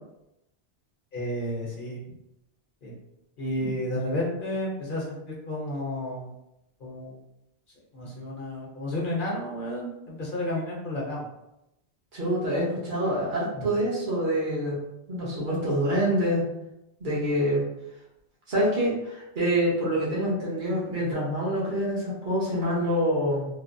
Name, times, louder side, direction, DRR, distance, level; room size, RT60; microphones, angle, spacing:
voice 1, 1.1-2.1 2.8-2.9 3.4-6.3 6.8-7.1 7.9-11.3 13.5-13.6, left 1 dB, 55° left, -3 dB, 0.8 m, -31 dB
voice 2, 12.1-14.8 15.1-16.4 17.0-17.6 18.5-23.5, equal, 50° right, -7 dB, 1.2 m, -26 dB
3.2 x 2.1 x 2.5 m, 0.87 s
omnidirectional pair, 1.1 m